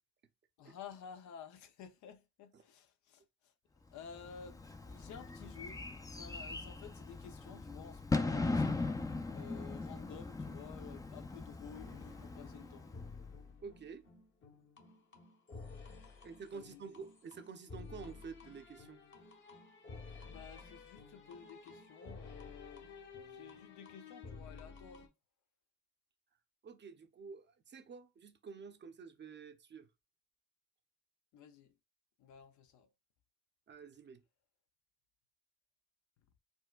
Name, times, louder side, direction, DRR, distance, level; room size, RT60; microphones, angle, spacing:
voice 1, 0.6-3.5 3.9-5.8 6.1-8.9 9.3-12.9 16.5-16.8 20.2-22.9 23.3-25.1 31.3-31.7 32.2-32.9, left 7 dB, 75° left, 0.5 m, -53 dB
Bird / Fireworks, 4.1-13.3, left 3 dB, 10° left, 0.3 m, -39 dB
sound 1, 11.7-25.1, left 4 dB, 40° left, 0.8 m, -53 dB
voice 2, 13.6-14.1 16.2-19.0 26.6-29.9 33.7-34.2, right 5 dB, 35° right, 0.6 m, -49 dB
4.4 x 2.1 x 2.3 m
cardioid pair, 90°, 30 cm